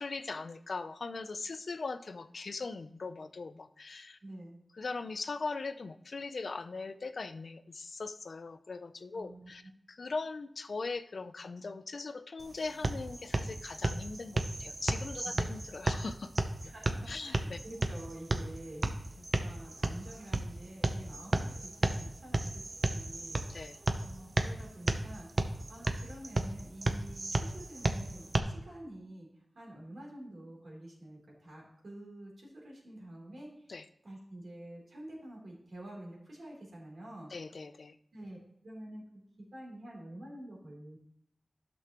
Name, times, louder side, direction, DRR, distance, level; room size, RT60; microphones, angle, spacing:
voice 1, 0.0-4.2 4.7-9.6 9.9-16.3 17.1-17.6 19.2-19.3 23.5-23.8 33.7-33.8 37.3-38.0, left 3 dB, 70° left, 11 dB, 0.5 m, -40 dB
voice 2, 4.2-4.6 9.1-9.5 15.2-15.5 16.6-23.5 24.0-33.7 34.0-37.3 38.1-38.4 38.6-39.0 39.5-41.0, right 1 dB, 80° right, -2 dB, 3.4 m, -48 dB
sound 1, 12.4-28.4, right 2 dB, 50° right, 0.7 m, -34 dB
12.0 x 6.3 x 3.0 m, 0.70 s
wide cardioid pair, 75°, 0 cm